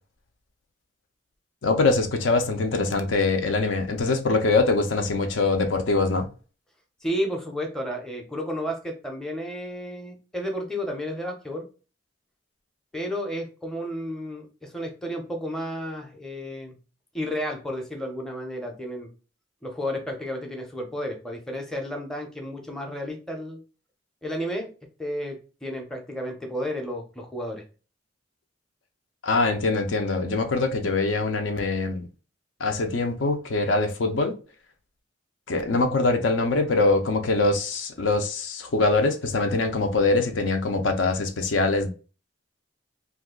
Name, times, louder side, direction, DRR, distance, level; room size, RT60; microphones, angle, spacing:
voice 1, 1.6-6.3 29.2-32.0 32.6-34.3 35.5-41.9, left 3 dB, 70° left, 0.5 m, -23 dB
voice 2, 7.0-11.7 12.9-16.8 17.1-19.1 19.6-23.6 24.2-24.7 25.0-27.6, equal, 5° left, 0.6 m, -32 dB
2.6 x 2.3 x 3.6 m
head